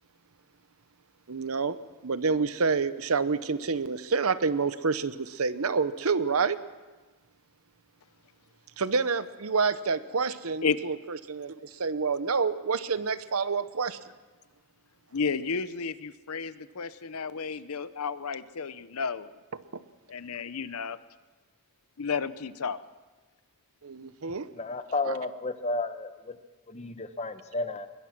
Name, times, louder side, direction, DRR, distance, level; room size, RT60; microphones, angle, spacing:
voice 1, 1.3-1.8 2.0-6.6 8.8-14.0 19.7-19.8 23.8-24.5 25.0-25.2, right 5 dB, 70° right, 14 dB, 0.9 m, -28 dB
voice 2, 15.1-19.3 20.1-21.0 22.0-22.8, left 5 dB, 75° left, 15 dB, 0.8 m, -32 dB
voice 3, 24.6-26.3 26.7-27.9, left 3 dB, 30° left, 9 dB, 1.1 m, -32 dB
22.0 x 21.0 x 6.0 m, 1.3 s
head